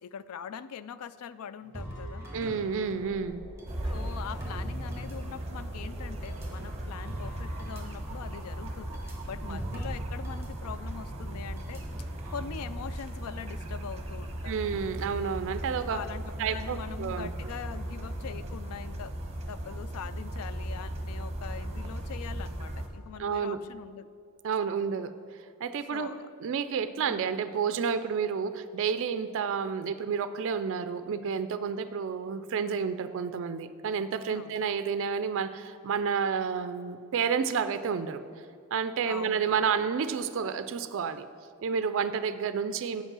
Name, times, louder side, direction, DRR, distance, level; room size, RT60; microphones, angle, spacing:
voice 1, 0.0-2.3 3.9-11.8 12.3-14.6 15.9-19.1 19.5-24.1 25.9-26.3 27.0-27.3 34.3-34.6 39.0-39.9, left 7 dB, 75° left, 15 dB, 0.3 m, -42 dB
sound 1, 1.6-6.9, left 1 dB, 55° left, 1.1 m, -51 dB
sound 2, 1.7-5.6 6.3-10.5 10.7-10.9 11.6-12.4, right 1 dB, 10° right, 1.6 m, -42 dB
voice 2, 2.3-3.4 9.5-9.6 14.4-16.0 16.4-17.3 23.2-23.6 24.4-25.1 25.6-26.1 26.4-38.2 38.7-41.2 41.6-43.0, right 6 dB, 60° right, 11 dB, 0.4 m, -30 dB
sound 3, 3.7-22.9, right 1 dB, 30° right, 0.9 m, -37 dB
7.9 x 5.4 x 6.0 m, 2.3 s
head